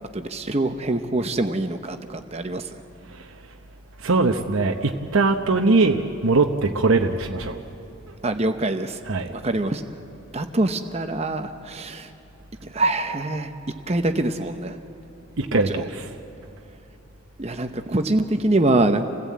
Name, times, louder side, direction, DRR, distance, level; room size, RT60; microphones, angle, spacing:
voice 1, 0.1-2.8 8.2-9.0 9.3-9.8 10.3-12.1 12.6-13.5 13.9-14.8 15.5-15.9 17.4-19.1, right 2 dB, 30° right, 7 dB, 0.8 m, -24 dB
voice 2, 3.0-3.4 4.0-7.6 9.0-9.3 15.4-16.1, right 3 dB, 75° right, 3 dB, 0.9 m, -21 dB
27.5 x 16.0 x 8.5 m, 3.0 s
head